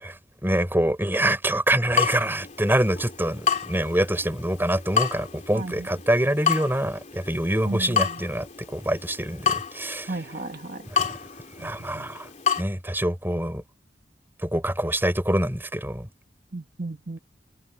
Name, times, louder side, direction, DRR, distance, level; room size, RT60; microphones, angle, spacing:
voice 1, 0.0-10.2 10.9-11.2 11.6-12.3 12.6-13.6 14.4-16.1, right 1 dB, 10° right, 5.2 m, -25 dB
Water tap faucet / Drip, 1.9-12.6, left 7 dB, 40° left, 3.3 m, -30 dB
voice 2, 5.5-5.9 7.6-8.1 10.1-10.9 11.6-12.1 16.5-17.2, right 2 dB, 50° right, 1.3 m, -34 dB
head